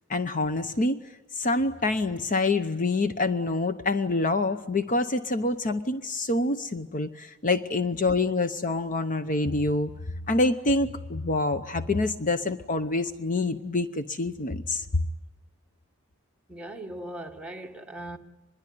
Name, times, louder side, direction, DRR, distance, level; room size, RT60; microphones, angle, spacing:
voice 1, 0.1-1.0 1.4-9.9 10.3-15.0, left 2 dB, 40° left, 0.8 m, -26 dB
voice 2, 16.5-18.2, right 1 dB, 5° right, 1.6 m, -39 dB
24.5 x 22.0 x 9.4 m
head